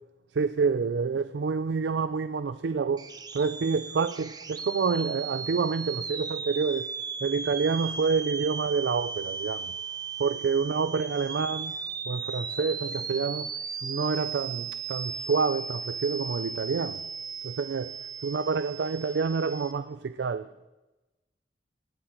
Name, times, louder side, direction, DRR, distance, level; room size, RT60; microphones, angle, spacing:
voice 1, 0.3-3.1 3.3-6.9 7.2-9.7 10.2-11.8 12.1-13.5 13.8-17.0 17.4-17.9 18.2-20.7, right 5 dB, 70° right, 0.4 m, -28 dB
sound 1, 3.0-19.7, right 5 dB, 25° right, 0.7 m, -36 dB
19.0 x 8.6 x 4.5 m
head